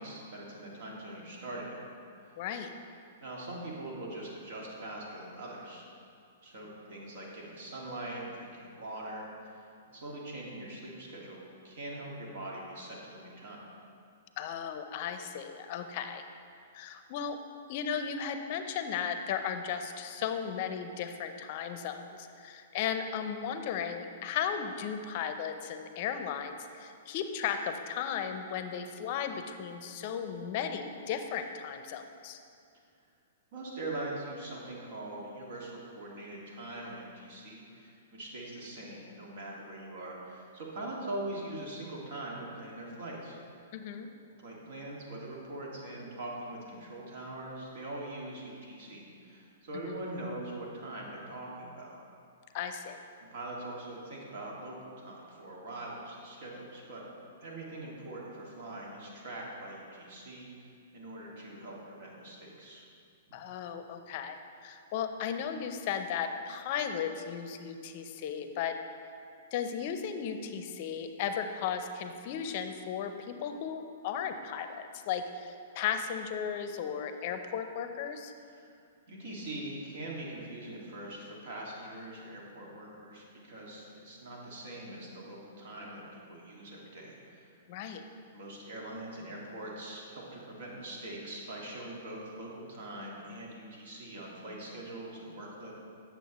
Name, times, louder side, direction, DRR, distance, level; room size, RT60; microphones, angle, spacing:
voice 1, 0.0-1.8 3.2-5.8 6.4-13.6 33.5-43.4 44.4-51.9 53.3-57.0 57.4-60.5 60.9-62.8 63.3-63.4 78.5-78.7 79.1-87.5 88.3-95.7, right 1 dB, 60° right, -3 dB, 1.9 m, -42 dB
voice 2, 2.4-2.7 14.4-16.2 16.7-17.4 17.7-32.4 43.7-44.1 52.5-53.0 63.3-64.4 64.6-68.8 69.5-78.3 87.7-88.0, left 7 dB, 50° left, 8 dB, 0.5 m, -35 dB
9.0 x 6.8 x 3.0 m, 2.4 s
hypercardioid pair, 125°, 0 cm